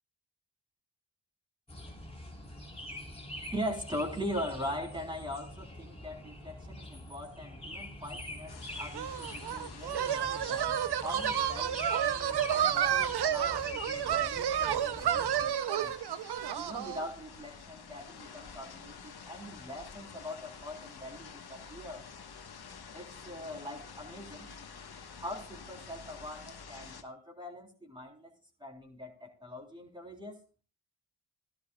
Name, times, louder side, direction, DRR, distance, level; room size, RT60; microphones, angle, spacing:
sound 1, 1.7-15.5, left 1 dB, 15° left, 3.2 m, -45 dB
voice 1, 3.5-15.9 16.6-22.1 22.9-24.5 25.2-28.3 28.6-30.4, equal, 10° right, 0 dB, 3.6 m, -41 dB
sound 2, 8.5-27.0, left 5 dB, 60° left, 1.4 m, -50 dB
sound 3, 8.9-17.1, right 9 dB, 65° right, 0.7 m, -30 dB
14.0 x 12.0 x 2.3 m, 0.38 s
cardioid pair, 50°, 43 cm